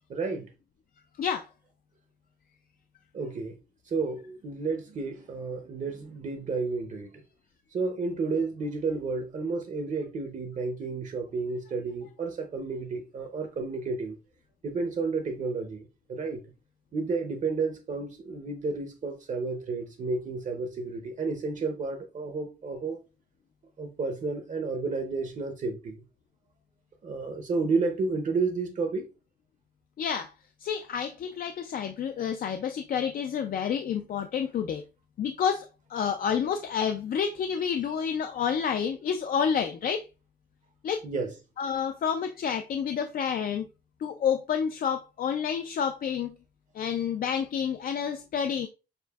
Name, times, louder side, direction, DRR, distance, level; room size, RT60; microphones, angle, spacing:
voice 1, 0.1-0.5 3.1-3.6 3.9-7.2 7.7-14.2 14.6-16.4 16.9-23.0 23.8-26.0 27.0-29.1 41.0-41.3, right 4 dB, 45° right, 0.6 m, -31 dB
voice 2, 30.0-30.3 30.6-34.8 35.2-40.1 40.8-41.0 41.6-43.7 44.0-46.4 46.7-48.7, left 7 dB, 55° left, 0.4 m, -29 dB
6.6 x 2.5 x 2.3 m
wide cardioid pair, 170°, 18 cm